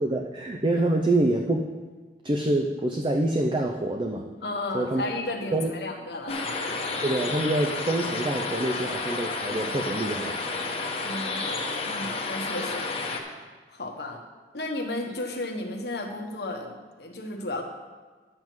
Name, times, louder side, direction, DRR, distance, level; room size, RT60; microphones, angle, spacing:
voice 1, 0.0-1.6 2.2-4.3 4.7-5.0 5.5-5.7 7.0-10.4, right 1 dB, 25° right, 3 dB, 0.5 m, -26 dB
voice 2, 4.4-6.7 11.0-13.3 13.7-14.2 14.5-17.6, left 2 dB, 65° left, 2 dB, 1.3 m, -34 dB
sound 1, 6.3-13.2, left 3 dB, 35° left, 1.0 m, -31 dB
10.5 x 7.6 x 4.6 m, 1.4 s
head